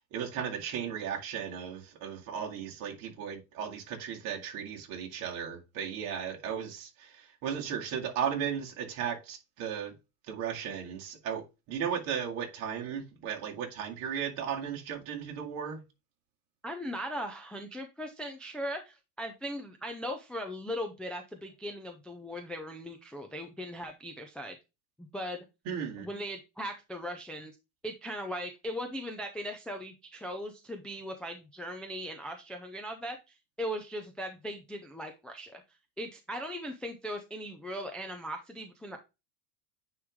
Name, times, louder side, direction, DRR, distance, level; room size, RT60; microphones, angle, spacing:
voice 1, 0.1-10.0 10.3-15.8 25.6-26.1, right 8 dB, 50° right, 2.2 m, -36 dB
voice 2, 16.6-24.6 25.0-25.4 26.0-27.5 27.8-35.6 36.0-39.0, equal, ahead, 0.3 m, -39 dB
9.4 x 3.2 x 3.5 m
supercardioid pair, 145°, 43 cm